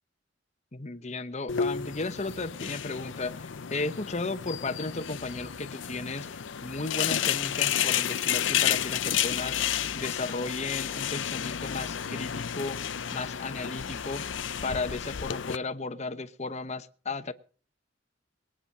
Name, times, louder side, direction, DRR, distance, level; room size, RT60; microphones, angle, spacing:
voice 1, 0.7-12.8 13.1-14.3 14.6-17.3, left 3 dB, 35° left, 1.0 m, -35 dB
sound 1, 1.5-15.6, left 9 dB, 75° left, 0.6 m, -31 dB
21.5 x 9.0 x 5.5 m
head